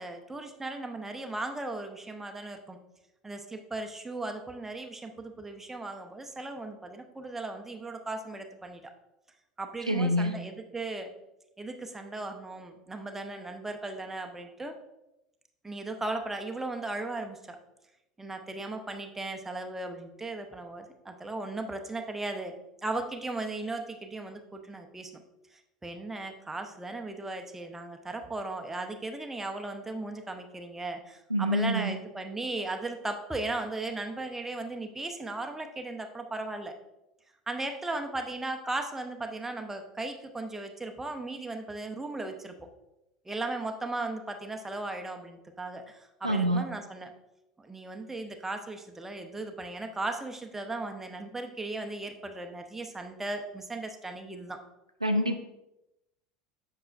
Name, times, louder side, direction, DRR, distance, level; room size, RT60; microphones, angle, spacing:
voice 1, 0.0-2.8 3.2-8.9 9.6-11.1 11.6-14.8 15.6-17.6 18.2-22.5 22.8-25.1 25.8-36.8 37.5-42.7 43.3-47.1 47.6-54.6, right 2 dB, 10° right, 5 dB, 0.7 m, -37 dB
voice 2, 9.9-10.4 31.3-32.0 46.2-46.7 55.0-55.4, equal, 90° right, 5 dB, 0.5 m, -26 dB
7.8 x 5.6 x 2.5 m, 0.92 s
figure-of-eight pair, 75°, 3 cm